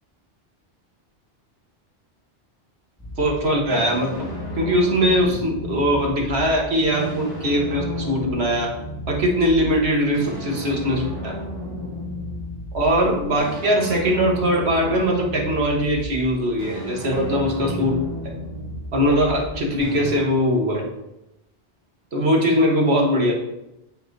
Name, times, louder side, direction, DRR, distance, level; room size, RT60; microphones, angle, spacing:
sound 1, 3.0-20.2, left 1 dB, 20° left, 1.6 m, -33 dB
voice 1, 3.2-4.3 4.6-8.7 9.1-11.4 12.7-18.0 18.9-20.9 22.1-23.3, equal, 70° right, 0 dB, 1.5 m, -21 dB
9.9 x 4.5 x 2.7 m, 0.90 s
omnidirectional pair, 1.1 m